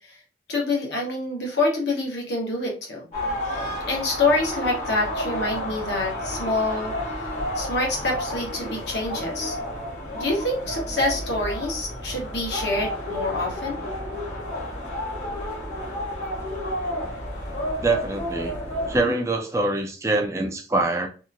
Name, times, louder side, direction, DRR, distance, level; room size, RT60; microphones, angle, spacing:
voice 1, 0.5-3.0 3.9-6.9 7.5-9.6 10.1-13.8, left 2 dB, 70° left, 0.9 m, -26 dB
sound 1, 3.1-19.0, left 1 dB, 40° left, 0.8 m, -31 dB
voice 2, 17.8-18.6 18.9-21.1, right 2 dB, 15° right, 0.3 m, -24 dB
2.8 x 2.4 x 2.5 m
head